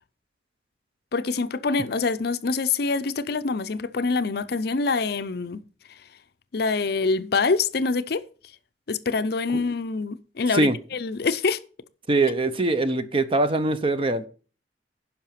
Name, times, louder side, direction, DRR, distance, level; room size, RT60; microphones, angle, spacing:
voice 1, 1.1-5.6 6.5-8.2 8.9-11.6, left 4 dB, 55° left, 0.5 m, -25 dB
voice 2, 12.1-14.2, right 2 dB, 30° right, 0.6 m, -22 dB
10.5 x 5.7 x 5.7 m
head